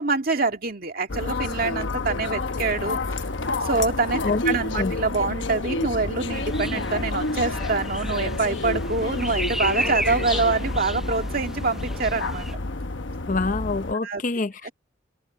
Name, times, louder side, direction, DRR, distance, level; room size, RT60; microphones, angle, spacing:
voice 1, 0.0-3.3 3.6-12.5 14.0-14.2, right 3 dB, 50° right, 2.1 m, -25 dB
sound 1, 1.1-13.9, left 2 dB, 70° left, 1.0 m, -29 dB
sound 2, 6.3-12.6, right 1 dB, ahead, 0.6 m, -33 dB
voice 2, 13.3-14.7, left 3 dB, 40° left, 0.7 m, -26 dB
head